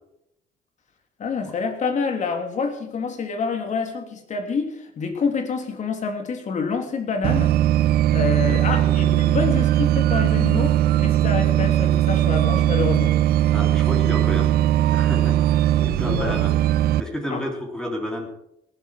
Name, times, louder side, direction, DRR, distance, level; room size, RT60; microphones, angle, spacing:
voice 1, 1.2-7.6 8.1-13.2 16.0-16.4 17.3-17.4, left 5 dB, 45° left, 5 dB, 3.3 m, -27 dB
sound 1, 7.2-17.0, right 12 dB, 65° right, 0.7 m, -19 dB
voice 2, 8.5-9.0 13.5-14.6 14.9-16.5 17.0-18.3, left 1 dB, 5° left, 1 dB, 3.5 m, -31 dB
18.5 x 12.5 x 4.7 m, 0.77 s
cardioid pair, 110°, 17 cm